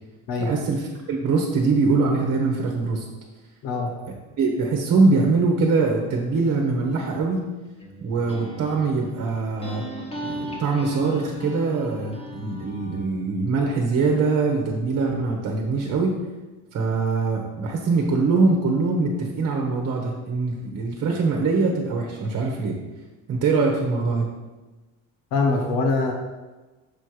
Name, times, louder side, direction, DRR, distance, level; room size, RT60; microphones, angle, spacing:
voice 1, 0.4-3.1 4.4-7.4 8.0-9.8 10.2-16.1 16.7-22.8 23.3-24.3, right 4 dB, 45° right, 1 dB, 1.3 m, -23 dB
voice 2, 3.6-4.0 25.3-26.1, left 3 dB, 70° left, 2 dB, 1.3 m, -23 dB
sound 1, 7.4-13.1, equal, 15° left, 1.0 m, -37 dB
6.9 x 4.5 x 4.9 m, 1.2 s
cardioid pair, 125°, 35 cm